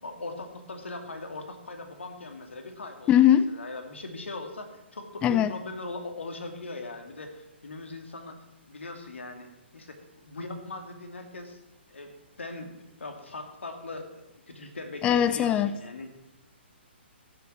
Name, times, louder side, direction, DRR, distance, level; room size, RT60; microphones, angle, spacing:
voice 1, 0.0-3.1 3.5-8.3 8.7-10.0 10.2-11.6 11.9-14.1 14.5-16.1, left 2 dB, 80° left, 5 dB, 2.5 m, -40 dB
voice 2, 3.1-3.5 5.2-5.5 15.0-15.7, left 10 dB, 15° left, 15 dB, 0.4 m, -20 dB
15.5 x 7.0 x 6.1 m, 0.94 s
hypercardioid pair, 135°, 6 cm